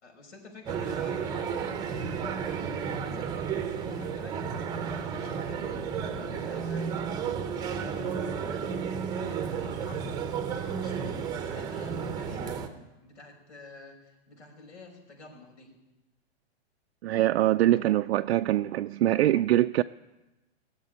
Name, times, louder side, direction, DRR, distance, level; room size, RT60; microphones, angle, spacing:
voice 1, 0.0-7.0 7.5-10.2 10.6-15.7, left 3 dB, 90° left, 5.5 m, -48 dB
sound 1, 0.7-12.7, right 7 dB, 10° right, 0.7 m, -32 dB
voice 2, 17.0-19.8, right 14 dB, 70° right, 0.5 m, -23 dB
18.0 x 7.5 x 9.9 m
hypercardioid pair, 160°, 34 cm